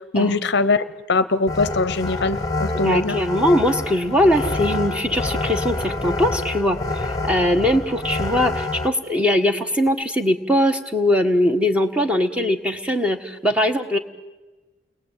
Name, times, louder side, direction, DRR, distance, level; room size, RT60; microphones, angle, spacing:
voice 1, 0.1-0.8 1.1-3.2, left 3 dB, 50° left, 14 dB, 0.8 m, -21 dB
sound 1, 1.5-8.9, left 2 dB, 15° left, 1.4 m, -27 dB
voice 2, 2.8-14.0, left 1 dB, 5° right, 5 dB, 1.5 m, -21 dB
29.5 x 21.5 x 9.2 m, 1.2 s
head